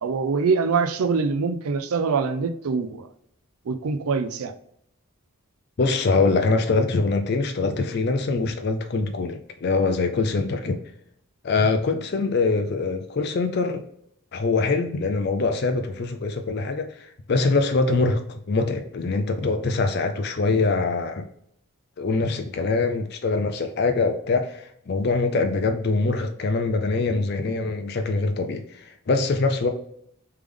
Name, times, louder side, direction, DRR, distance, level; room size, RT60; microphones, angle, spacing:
voice 1, 0.0-3.1 3.7-4.5, right 5 dB, 90° right, 0.4 m, -24 dB
voice 2, 5.8-10.8 11.4-13.8 14.3-21.3 22.0-29.7, left 3 dB, 50° left, 0.4 m, -23 dB
3.4 x 3.3 x 3.5 m
head